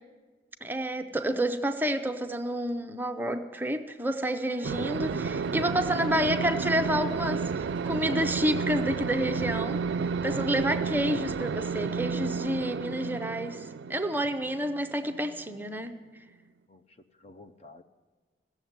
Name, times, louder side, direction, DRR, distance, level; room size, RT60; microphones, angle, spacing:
voice 1, 0.6-15.9, right 1 dB, 10° right, 6 dB, 0.6 m, -29 dB
Bowed string instrument, 4.4-8.7, right 4 dB, 30° right, 1.0 m, -48 dB
sound 1, 4.6-15.7, right 5 dB, 85° right, 0.4 m, -32 dB
voice 2, 10.2-10.6 16.7-17.8, left 2 dB, 35° left, 7 dB, 0.6 m, -51 dB
16.0 x 7.3 x 9.3 m, 1.3 s
head